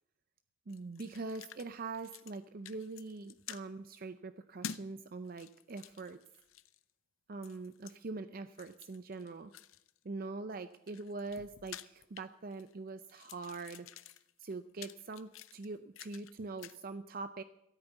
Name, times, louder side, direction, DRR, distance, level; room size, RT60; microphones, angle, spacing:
sound 1, 0.7-1.7 1.9-2.4 2.7-3.6 4.6-4.9 5.3-6.8 7.4-7.9 8.5-10.0 10.6-12.7 13.0-16.3 16.6-16.8, left 8 dB, 85° left, 0.7 m, -50 dB
voice 1, 0.7-6.2 7.3-9.5 10.0-13.9 14.4-17.4, right 3 dB, 45° right, 11 dB, 0.5 m, -43 dB
14.0 x 9.0 x 8.1 m, 0.82 s
head